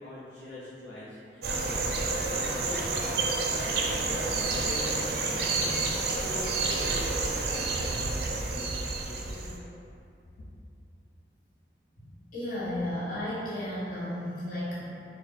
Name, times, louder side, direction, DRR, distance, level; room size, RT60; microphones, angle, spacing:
voice 1, 0.0-9.6, left 1 dB, 90° left, -8 dB, 0.6 m, -43 dB
sound 1, 1.4-9.6, right 3 dB, 65° right, 0.4 m, -29 dB
voice 2, 12.3-14.9, left 1 dB, 50° left, -10 dB, 1.4 m, -33 dB
4.4 x 2.2 x 3.9 m, 2.6 s
head